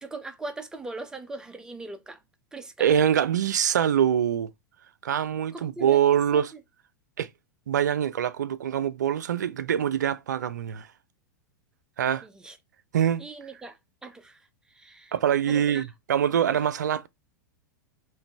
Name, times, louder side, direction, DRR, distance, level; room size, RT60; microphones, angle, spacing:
voice 1, 0.0-2.2 2.5-2.9 5.5-6.0 6.3-6.4 12.2-12.6 13.2-13.8 14.0-14.4 14.8-15.1 15.5-15.9 16.5-16.6, right 3 dB, 5° right, 0.6 m, -39 dB
voice 2, 2.8-4.5 5.0-6.5 7.2-7.3 7.7-10.9 12.0-12.3 12.9-13.2 15.1-17.1, right 9 dB, 65° right, 0.4 m, -24 dB
3.8 x 2.6 x 3.4 m
figure-of-eight pair, 95°, 10 cm